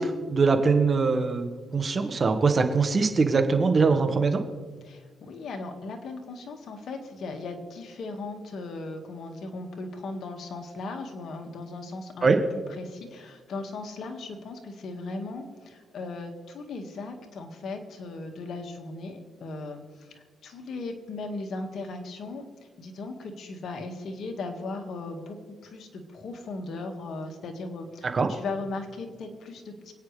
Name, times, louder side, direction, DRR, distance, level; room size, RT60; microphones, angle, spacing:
voice 1, 0.0-4.4 12.2-12.4 28.1-28.3, right 4 dB, 35° right, 6 dB, 1.5 m, -22 dB
voice 2, 4.8-12.3 12.8-22.4 22.8-25.4 25.6-29.9, left 3 dB, 60° left, 4 dB, 1.9 m, -37 dB
26.0 x 9.4 x 3.4 m, 1.5 s
cardioid pair, 90°, 0 cm